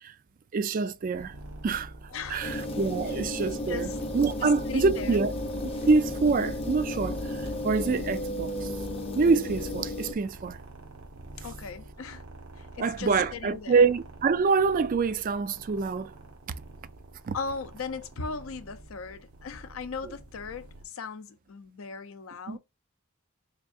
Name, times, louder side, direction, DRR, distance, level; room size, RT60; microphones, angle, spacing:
voice 1, 0.5-1.4 1.6-1.9 2.3-5.3 5.9-8.7 9.1-10.6 12.8-16.1 17.3-17.4 22.5-22.6, right 4 dB, 40° right, 0.3 m, -26 dB
sound 1, 1.1-20.8, right 1 dB, 85° right, 1.1 m, -46 dB
voice 2, 2.1-2.6 3.7-4.0 4.4-5.2 11.4-12.2 12.5-13.8 17.3-22.6, left 5 dB, 75° left, 0.5 m, -38 dB
sound 2, 2.4-10.1, left 1 dB, 30° left, 0.6 m, -33 dB
3.5 x 3.5 x 2.4 m
head